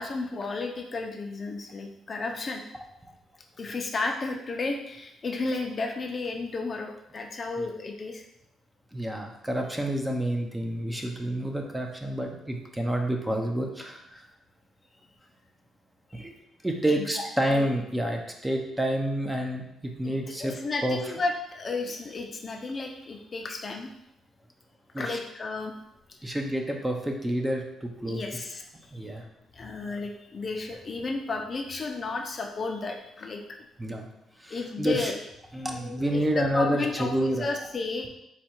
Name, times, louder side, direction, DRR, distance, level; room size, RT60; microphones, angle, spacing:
voice 1, 0.0-2.6 3.6-8.2 16.1-16.3 16.9-17.7 20.0-20.1 20.4-23.9 25.0-25.7 26.1-26.2 28.1-29.0 29.5-33.6 34.5-35.2 35.7-38.1, left 3 dB, 40° left, 3 dB, 0.5 m, -33 dB
voice 2, 8.9-14.3 16.1-16.3 16.6-20.5 20.8-21.0 24.9-25.2 26.2-28.2 28.9-29.2 33.8-34.1 34.4-35.1 35.5-37.5, right 1 dB, 10° right, 2 dB, 0.6 m, -29 dB
4.3 x 2.3 x 4.4 m, 0.81 s
cardioid pair, 90°, 0 cm